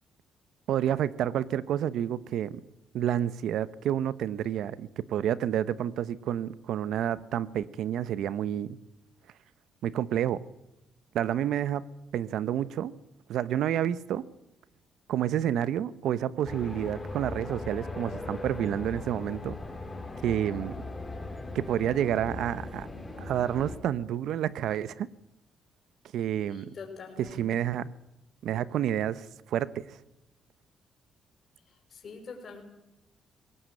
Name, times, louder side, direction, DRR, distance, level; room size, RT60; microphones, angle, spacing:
voice 1, 0.7-2.6 2.9-8.8 9.8-10.4 11.1-11.9 12.1-12.9 13.3-14.2 15.1-19.6 20.2-20.7 21.5-22.9 23.2-25.1 26.1-26.7 27.4-27.9 28.4-30.0, right 10 dB, 75° right, 0.9 m, -29 dB
sound 1, 16.4-23.8, left 2 dB, 15° left, 4.7 m, -39 dB
voice 2, 26.5-27.5 31.7-32.6, left 5 dB, 50° left, 5.8 m, -45 dB
20.5 x 18.0 x 9.1 m
cardioid pair, 90°, 0 cm